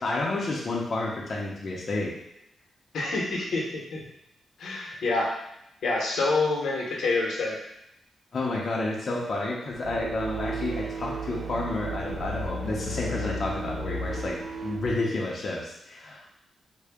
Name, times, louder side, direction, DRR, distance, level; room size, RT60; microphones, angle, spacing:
voice 1, 0.0-2.1 8.3-14.4 14.6-16.3, left 2 dB, 45° left, -4 dB, 0.6 m, -30 dB
voice 2, 2.9-4.0 4.6-5.3 5.8-7.6, left 3 dB, 85° left, -2 dB, 0.8 m, -27 dB
sound 1, 9.7-14.9, right 2 dB, 85° right, 0.6 m, -34 dB
3.7 x 2.2 x 3.5 m, 0.84 s
wide cardioid pair, 120°, 0 cm